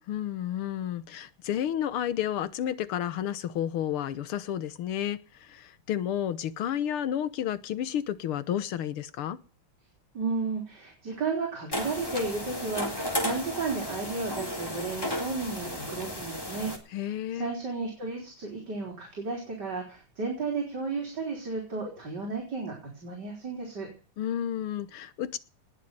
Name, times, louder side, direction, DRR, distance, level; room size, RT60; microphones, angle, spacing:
voice 1, 0.1-9.4 16.9-17.5 24.2-25.4, left 10 dB, 85° left, 15 dB, 2.0 m, -31 dB
voice 2, 10.1-16.7 17.0-22.7 23.0-23.9, right 4 dB, 50° right, 1 dB, 4.6 m, -33 dB
sound 1, 11.7-16.8, left 1 dB, 10° left, 3.2 m, -34 dB
19.5 x 6.5 x 9.3 m, 0.37 s
omnidirectional pair, 2.3 m